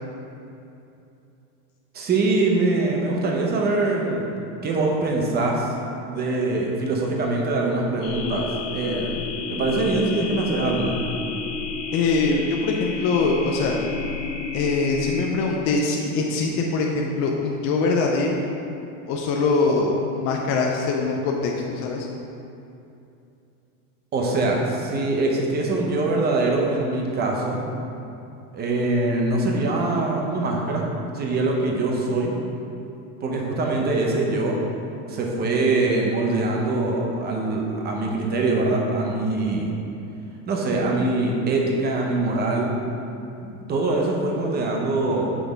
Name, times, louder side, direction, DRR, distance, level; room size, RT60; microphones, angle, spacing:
voice 1, 1.9-4.3 4.6-5.7 6.1-11.0 24.1-27.6 28.5-30.9 31.1-32.3 33.2-34.6 35.1-39.8 40.5-42.7 43.4-45.4, right 2 dB, 20° right, 0 dB, 0.7 m, -23 dB
sound 1, 8.0-15.2, left 4 dB, 60° left, 1.1 m, -31 dB
voice 2, 11.9-13.8 14.5-18.4 19.1-22.1, left 3 dB, 35° left, -1 dB, 0.4 m, -23 dB
6.2 x 3.3 x 5.0 m, 2.7 s
supercardioid pair, 140°, 45 cm